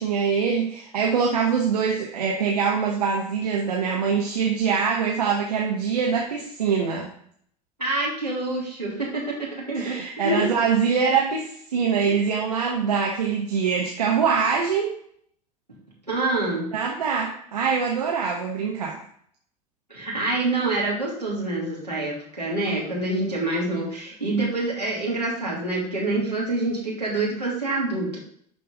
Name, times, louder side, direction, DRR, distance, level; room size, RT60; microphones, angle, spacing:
voice 1, 0.0-7.1 9.7-15.0 16.7-19.0, right 6 dB, 75° right, -1 dB, 1.2 m, -24 dB
voice 2, 7.8-10.5 16.1-16.7 19.9-28.2, right 2 dB, 90° right, -5 dB, 2.8 m, -26 dB
11.5 x 4.6 x 4.0 m, 0.64 s
figure-of-eight pair, 75°, 20 cm